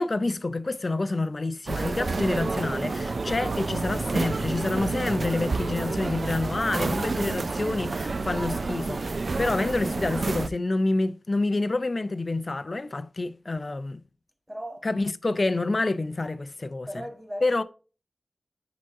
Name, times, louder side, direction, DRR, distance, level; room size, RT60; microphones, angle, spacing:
voice 1, 0.0-14.0 14.8-16.9 17.4-17.6, left 2 dB, 45° left, 0.5 m, -28 dB
sound 1, 1.7-10.5, right 3 dB, 60° right, 0.3 m, -29 dB
voice 2, 14.5-14.9 16.8-17.6, equal, 10° right, 1.2 m, -37 dB
10.5 x 3.8 x 2.6 m
wide cardioid pair, 85°, 0 cm